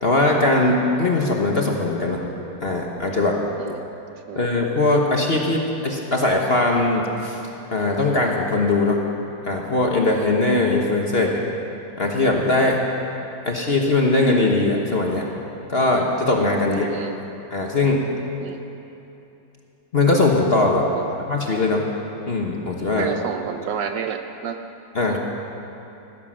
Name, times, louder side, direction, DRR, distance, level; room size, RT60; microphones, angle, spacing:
voice 1, 0.0-2.2 2.6-3.4 4.4-7.4 7.7-9.0 9.4-11.5 12.0-12.8 13.5-15.3 15.7-16.9 17.5-18.0 19.9-20.9 21.3-21.8 22.3-23.1 24.9-25.2, left 2 dB, 35° left, 0 dB, 1.1 m, -20 dB
voice 2, 16.7-17.2 18.4-18.6 20.9-21.1 23.0-24.6 25.1-25.2, right 7 dB, 70° right, 6 dB, 1.2 m, -30 dB
15.5 x 13.5 x 6.3 m, 2.9 s
omnidirectional pair, 2.2 m